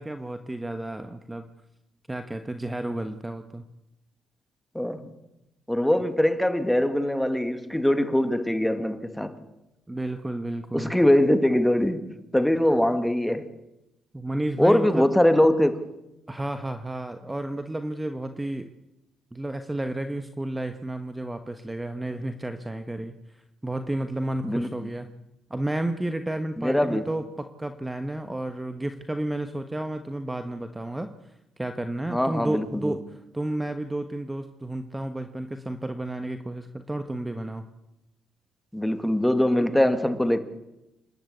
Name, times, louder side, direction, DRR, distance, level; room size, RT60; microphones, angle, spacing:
voice 1, 0.0-1.5 2.1-3.6 9.9-10.9 14.1-15.1 16.3-18.7 19.3-25.1 25.5-31.1 31.6-37.6, right 1 dB, 10° right, 1.3 m, -32 dB
voice 2, 4.7-5.1 5.7-9.4 10.7-12.1 12.3-13.5 14.6-15.8 24.4-24.7 26.6-27.1 32.1-32.9 38.7-40.4, left 1 dB, 5° left, 2.0 m, -22 dB
27.5 x 12.0 x 8.6 m
cardioid pair, 90°, 0 cm